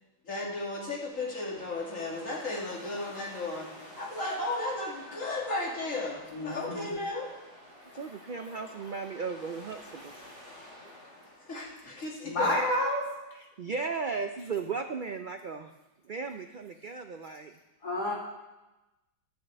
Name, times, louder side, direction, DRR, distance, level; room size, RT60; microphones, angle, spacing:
voice 1, 0.2-7.3 11.5-12.6, left 2 dB, 50° left, -4 dB, 3.2 m, -35 dB
sound 1, 1.1-12.3, left 1 dB, 35° left, 5.4 m, -50 dB
voice 2, 6.3-6.9 12.2-13.1 17.8-18.1, left 1 dB, 85° left, -3 dB, 3.3 m, -29 dB
voice 3, 7.9-10.1 13.3-15.7 16.0-17.6, right 5 dB, 75° right, 6 dB, 0.4 m, -36 dB
12.5 x 6.8 x 8.0 m, 1.0 s
omnidirectional pair, 1.7 m